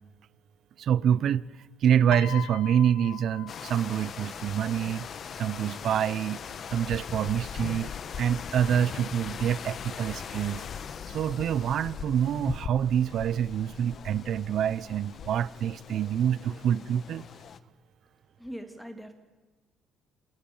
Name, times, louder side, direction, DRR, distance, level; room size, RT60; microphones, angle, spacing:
voice 1, 0.8-1.4 1.8-5.1 5.4-6.4 6.7-10.6 11.1-17.2, right 9 dB, 55° right, 0.8 m, -26 dB
Piano, 2.1-4.5 5.5-5.8, left 15 dB, 90° left, 0.8 m, -42 dB
sound 1, 3.5-17.6, left 7 dB, 40° left, 1.1 m, -40 dB
voice 2, 18.4-19.1, equal, ahead, 2.9 m, -41 dB
29.0 x 27.5 x 7.2 m
cardioid pair, 155°, 0 cm